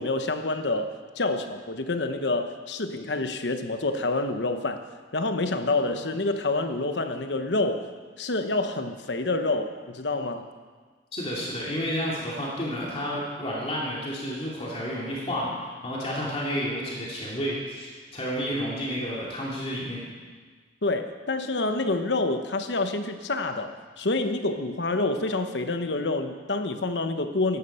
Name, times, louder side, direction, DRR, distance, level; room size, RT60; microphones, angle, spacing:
voice 1, 0.0-4.8 5.1-7.9 8.2-10.5 20.8-27.6, left 2 dB, 70° left, 7 dB, 1.1 m, -27 dB
voice 2, 11.1-15.5 15.8-20.0, equal, 35° left, -5 dB, 2.7 m, -31 dB
15.5 x 11.5 x 5.7 m, 1.5 s
head